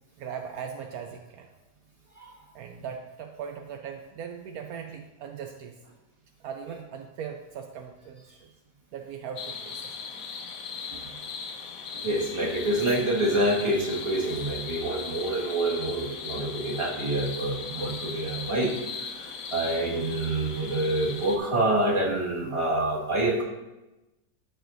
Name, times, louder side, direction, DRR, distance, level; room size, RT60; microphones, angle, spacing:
voice 1, 0.2-1.5 2.5-5.8 6.4-8.5 8.9-10.0, right 7 dB, 75° right, 4 dB, 1.0 m, -39 dB
sound 1, 9.4-21.4, left 5 dB, 65° left, 1.2 m, -38 dB
voice 2, 11.9-23.4, right 1 dB, 20° right, -4 dB, 1.6 m, -27 dB
13.0 x 5.0 x 2.6 m, 1.0 s
omnidirectional pair, 1.6 m